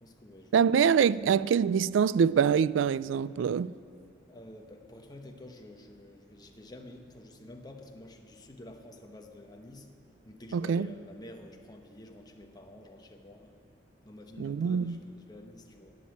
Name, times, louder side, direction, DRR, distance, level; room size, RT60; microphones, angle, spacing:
voice 1, 0.0-0.7 4.3-9.9 10.2-13.5 14.0-16.0, left 1 dB, 20° left, 1.1 m, -49 dB
voice 2, 0.5-3.7 10.5-10.9 14.4-15.0, right 7 dB, 75° right, 0.3 m, -25 dB
12.5 x 8.4 x 9.3 m
head